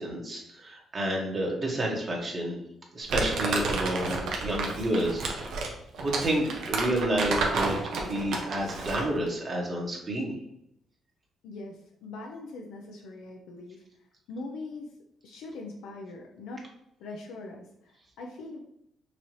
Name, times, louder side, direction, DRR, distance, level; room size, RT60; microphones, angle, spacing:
voice 1, 0.0-2.6 2.9-5.5 6.0-10.4, right 1 dB, 40° right, -1 dB, 1.5 m, -30 dB
Crumpling crinkling, 3.1-9.2, right 3 dB, 75° right, 0.9 m, -30 dB
voice 2, 11.4-13.8 14.3-14.9 15.2-16.7 17.0-18.6, left 2 dB, 90° left, 1 dB, 0.6 m, -41 dB
5.8 x 2.8 x 3.1 m, 0.80 s
cardioid pair, 90°, 0 cm